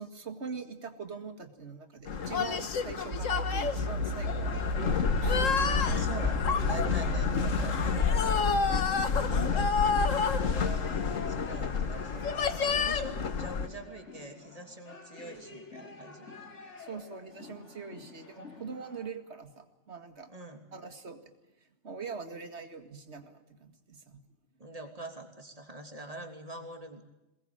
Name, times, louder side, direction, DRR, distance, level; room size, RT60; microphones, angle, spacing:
voice 1, 0.0-5.7 9.0-9.7 16.8-20.3 20.7-21.2 21.6-24.2, right 5 dB, 55° right, 7 dB, 2.4 m, -43 dB
sound 1, 2.1-13.7, left 5 dB, 80° left, 1.7 m, -28 dB
sound 2, 2.2-19.1, left 4 dB, 65° left, 3.1 m, -47 dB
sound 3, 3.1-8.1, equal, 85° right, 2.1 m, -34 dB
voice 2, 5.8-8.0 10.5-16.3 20.3-20.6 24.6-27.1, right 2 dB, 30° right, 5 dB, 3.1 m, -44 dB
23.0 x 20.0 x 8.9 m, 0.97 s
omnidirectional pair, 1.3 m